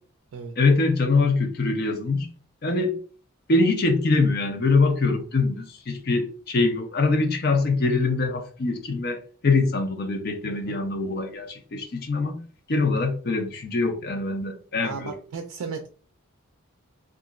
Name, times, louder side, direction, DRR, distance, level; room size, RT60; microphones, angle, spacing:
voice 1, 0.6-2.3 2.6-2.9 3.5-12.4 12.7-15.1, left 3 dB, 45° left, 0.5 m, -23 dB
voice 2, 10.5-10.8 14.8-15.9, right 5 dB, 85° right, 0.4 m, -35 dB
2.8 x 2.4 x 2.4 m
head